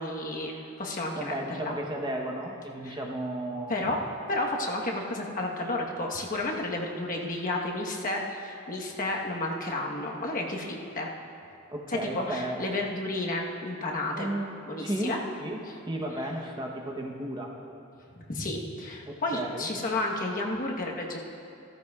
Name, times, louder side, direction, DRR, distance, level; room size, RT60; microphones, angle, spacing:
voice 1, 0.0-1.4 1.6-1.7 2.8-3.0 3.7-4.0 4.3-11.1 11.9-14.3 14.7-15.2 18.3-21.2, left 2 dB, 40° left, -1 dB, 1.2 m, -31 dB
voice 2, 1.2-3.7 11.7-12.6 14.1-14.5 14.8-17.5 19.1-19.7, right 1 dB, 20° right, 0 dB, 0.9 m, -34 dB
15.5 x 14.5 x 2.4 m, 2.6 s
head